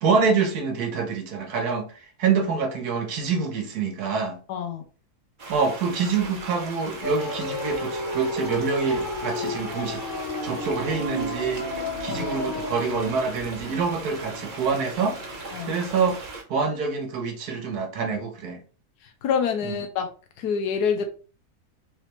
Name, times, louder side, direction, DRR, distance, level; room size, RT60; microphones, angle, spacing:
voice 1, 0.0-1.9 2.2-4.4 5.5-10.0 10.4-15.2 15.6-16.2 16.5-18.6 19.6-19.8, right 5 dB, 75° right, 1.4 m, -26 dB
voice 2, 4.5-4.8 12.1-12.3 15.5-15.8 19.2-20.1 20.4-21.1, left 6 dB, 90° left, 1.2 m, -26 dB
sound 1, 5.4-16.4, right 3 dB, 40° right, 0.8 m, -39 dB
sound 2, 7.0-16.1, left 1 dB, 45° left, 0.8 m, -33 dB
4.0 x 3.2 x 3.1 m
omnidirectional pair, 1.7 m